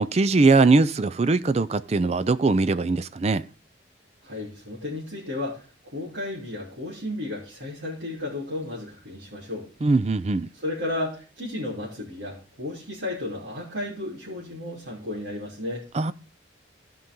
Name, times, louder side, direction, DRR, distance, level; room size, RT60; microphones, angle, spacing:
voice 1, 0.0-3.4 9.8-10.5 15.9-16.1, right 3 dB, 35° right, 0.4 m, -21 dB
voice 2, 4.2-9.7 10.5-15.9, left 1 dB, 80° right, 3.2 m, -33 dB
15.0 x 5.5 x 3.7 m
head